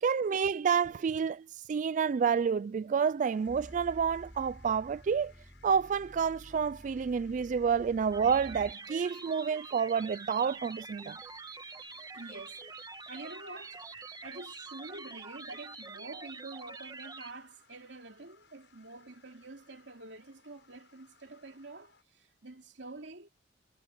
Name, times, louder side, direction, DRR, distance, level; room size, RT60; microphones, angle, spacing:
voice 1, 0.0-5.3 5.6-11.2, right 6 dB, 45° right, 0.3 m, -29 dB
sound 1, 3.2-22.0, left 6 dB, 75° left, 7.9 m, -65 dB
sound 2, 3.5-8.7, equal, 10° left, 6.7 m, -51 dB
sound 3, 8.1-17.3, right 4 dB, 25° right, 1.6 m, -46 dB
voice 2, 11.9-12.6 13.1-13.9 14.2-23.3, right 2 dB, 85° right, 2.7 m, -47 dB
head